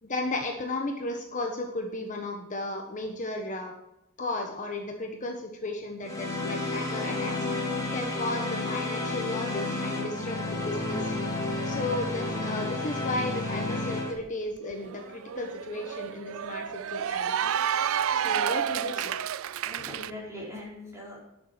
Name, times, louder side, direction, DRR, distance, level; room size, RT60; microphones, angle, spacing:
voice 1, 0.0-3.7 4.2-7.4 7.9-11.2 11.6-17.5 18.2-19.1, left 2 dB, 40° left, 3 dB, 1.3 m, -34 dB
sound 1, 6.0-14.1, left 2 dB, 15° left, 3.0 m, -31 dB
Cheering / Applause, 14.3-14.4 14.7-20.1, right 9 dB, 75° right, 0.4 m, -30 dB
voice 2, 18.2-19.1 19.6-21.2, left 1 dB, 15° right, -5 dB, 4.7 m, -42 dB
11.0 x 7.1 x 5.8 m, 0.88 s
head